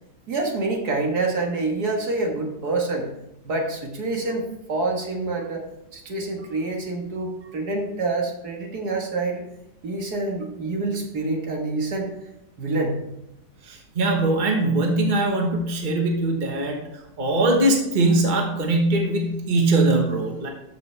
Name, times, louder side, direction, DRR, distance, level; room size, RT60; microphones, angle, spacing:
voice 1, 0.3-3.1 3.4-5.6 5.9-9.4 9.8-12.1 12.6-13.0, right 3 dB, 65° right, 1 dB, 2.1 m, -27 dB
voice 2, 13.7-16.9 17.2-20.5, right 2 dB, 30° right, 1 dB, 1.4 m, -21 dB
13.5 x 5.7 x 3.4 m, 0.85 s
omnidirectional pair, 1.8 m